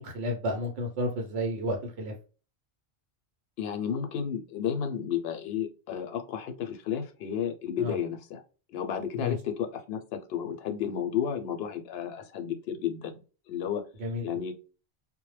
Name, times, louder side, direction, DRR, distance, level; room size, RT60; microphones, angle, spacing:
voice 1, 0.0-2.1 7.8-7.9 9.2-9.4 14.0-14.3, left 1 dB, 75° right, 1 dB, 0.8 m, -31 dB
voice 2, 3.6-8.4 8.7-13.2 13.5-13.8 14.2-14.5, left 8 dB, 70° left, 6 dB, 0.7 m, -32 dB
2.1 x 2.0 x 3.1 m, 0.35 s
omnidirectional pair, 1.1 m